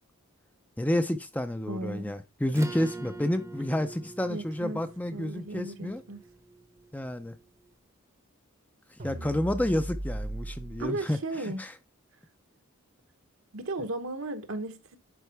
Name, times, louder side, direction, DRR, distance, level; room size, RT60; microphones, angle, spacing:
voice 1, 0.8-6.0 6.9-7.4 9.0-11.7, left 1 dB, 5° left, 0.5 m, -30 dB
voice 2, 1.7-2.1 4.3-4.8 5.1-6.2 10.8-11.6 13.5-15.0, right 2 dB, 70° right, 1.1 m, -35 dB
Acoustic guitar / Strum, 2.5-7.4, right 2 dB, 15° right, 0.8 m, -44 dB
sound 1, 9.0-10.8, right 1 dB, 40° right, 0.9 m, -36 dB
11.0 x 4.5 x 3.4 m
head